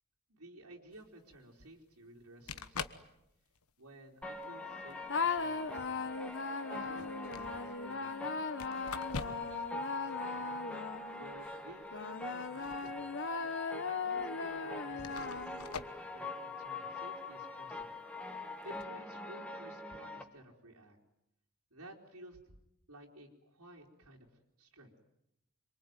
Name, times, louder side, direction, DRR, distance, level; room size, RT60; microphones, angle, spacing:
voice 1, 0.3-3.1 3.8-6.1 6.7-8.5 9.2-10.7 11.1-13.1 13.8-17.9 18.6-21.0 21.7-22.5 22.9-24.3 24.6-24.9, right 1 dB, 85° right, -2 dB, 3.8 m, -54 dB
sound 1, 0.9-1.1 2.2-2.3 2.5-3.1 3.5-3.9 4.9-5.0 6.7-7.5 8.6-9.6 9.9-10.0 12.3-13.1 13.4-13.5 14.3-14.4 15.0-16.0 18.6-18.8, left 5 dB, 80° left, 1.3 m, -44 dB
sound 2, 4.2-20.2, left 2 dB, 5° left, 1.8 m, -44 dB
sound 3, 5.1-11.3 11.9-15.8, left 4 dB, 55° left, 1.4 m, -38 dB
26.5 x 23.5 x 9.4 m, 0.84 s
head